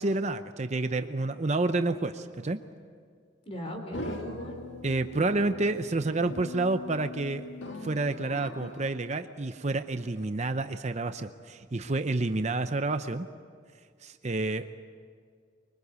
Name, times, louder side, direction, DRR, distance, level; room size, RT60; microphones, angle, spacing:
voice 1, 0.0-2.6 4.8-7.4 7.8-13.3 14.0-14.7, right 2 dB, 35° right, 9 dB, 0.7 m, -29 dB
voice 2, 3.5-4.6, equal, 30° left, 3 dB, 4.1 m, -38 dB
sound 1, 3.9-8.9, left 2 dB, 75° left, 2.0 m, -41 dB
25.5 x 23.5 x 8.2 m, 2.1 s
head